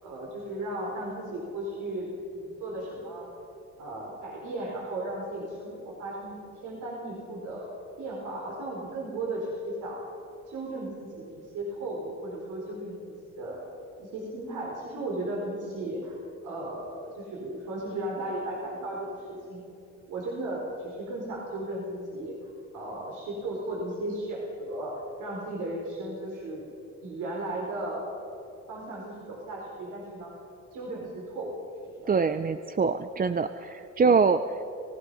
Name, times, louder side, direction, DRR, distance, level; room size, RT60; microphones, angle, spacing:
voice 1, 0.0-3.3 3.8-7.7 8.0-10.0 10.5-13.6 14.0-16.2 16.4-19.6 20.1-24.9 25.2-26.7 27.0-28.0 28.7-30.3 30.7-31.5 32.0-32.1, right 1 dB, 80° right, -3 dB, 4.5 m, -35 dB
voice 2, 32.1-34.6, right 5 dB, 30° right, 10 dB, 0.6 m, -24 dB
29.0 x 17.0 x 5.6 m, 2.7 s
cardioid pair, 90°, 30 cm